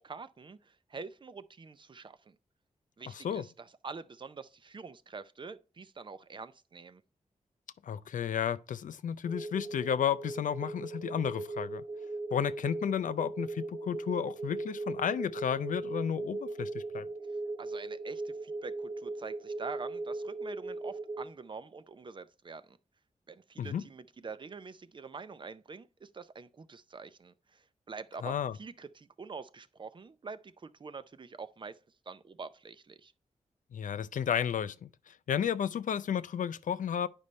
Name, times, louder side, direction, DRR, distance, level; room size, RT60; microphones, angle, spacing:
voice 1, 0.0-2.4 3.0-7.0 17.6-22.8 23.3-31.8 32.1-33.1, right 4 dB, 40° right, 0.5 m, -46 dB
voice 2, 3.1-3.5 7.8-11.8 12.3-17.1 23.6-23.9 28.2-28.5 33.7-37.1, left 8 dB, 90° left, 0.5 m, -32 dB
sound 1, 9.2-21.2, right 2 dB, 90° right, 1.1 m, -39 dB
9.9 x 5.3 x 3.2 m
wide cardioid pair, 140°, 13 cm